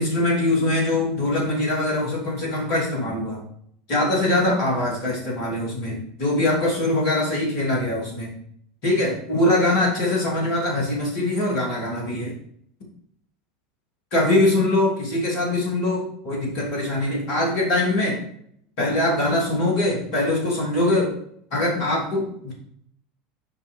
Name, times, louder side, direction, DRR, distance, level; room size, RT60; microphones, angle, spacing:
voice 1, 0.0-3.4 3.9-8.3 8.8-12.3 14.1-18.2 18.8-21.1 21.5-22.5, left 1 dB, 55° left, -2 dB, 2.9 m, -22 dB
6.8 x 5.4 x 4.7 m, 0.68 s
figure-of-eight pair, 75°, 0 cm